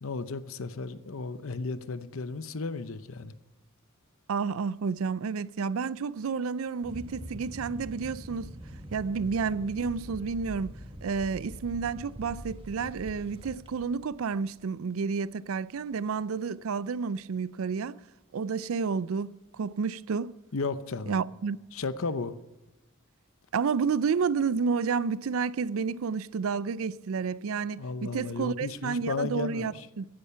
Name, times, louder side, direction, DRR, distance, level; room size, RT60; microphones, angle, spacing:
voice 1, 0.0-3.3 20.5-21.1 21.7-22.4 27.8-29.9, left 4 dB, 70° left, 0.7 m, -34 dB
voice 2, 4.3-8.5 8.9-18.0 18.3-20.3 21.1-21.6 23.5-30.1, right 5 dB, 70° right, 0.4 m, -30 dB
sound 1, 6.8-14.6, equal, 25° right, 1.4 m, -44 dB
15.5 x 10.0 x 5.6 m
head